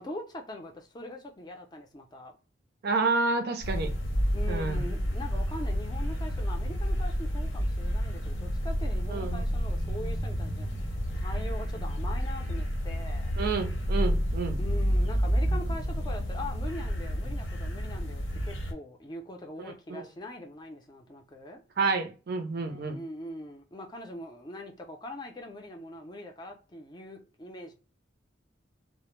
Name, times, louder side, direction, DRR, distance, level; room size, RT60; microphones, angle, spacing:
voice 1, 0.0-2.3 4.3-13.3 14.6-21.6 22.6-27.7, left 1 dB, 20° left, 0.5 m, -42 dB
voice 2, 2.8-3.9 4.5-4.8 9.1-9.4 13.4-14.6 19.9-20.0 21.8-23.0, right 4 dB, 55° right, 0.5 m, -29 dB
sound 1, 3.6-18.7, equal, 80° left, 0.7 m, -30 dB
2.1 x 2.0 x 2.9 m
head